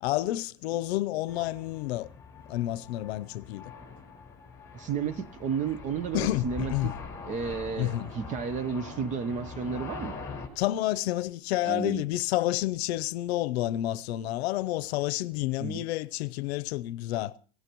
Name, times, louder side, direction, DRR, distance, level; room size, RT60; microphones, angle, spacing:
voice 1, 0.0-2.1 2.5-3.7 6.1-6.9 7.8-8.1 10.6-17.3, left 15 dB, 80° left, 0.7 m, -29 dB
sound 1, 1.3-10.5, left 5 dB, 10° left, 4.5 m, -43 dB
voice 2, 4.7-6.9 7.2-10.2 11.6-12.0 15.6-15.8, right 6 dB, 25° right, 0.8 m, -32 dB
24.5 x 17.5 x 3.0 m
supercardioid pair, 165°, 31 cm